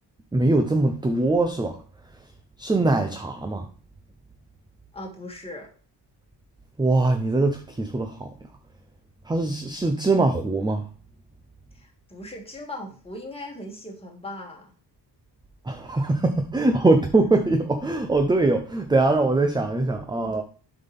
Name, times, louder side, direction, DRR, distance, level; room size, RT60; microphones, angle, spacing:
voice 1, 0.3-1.8 2.6-3.7 6.8-8.3 9.3-10.8 15.7-20.4, right 2 dB, 10° right, 7 dB, 0.6 m, -22 dB
voice 2, 4.9-5.7 11.7-14.7, left 1 dB, 15° left, 0 dB, 2.2 m, -39 dB
7.6 x 5.8 x 3.5 m, 0.39 s
cardioid pair, 115°, 42 cm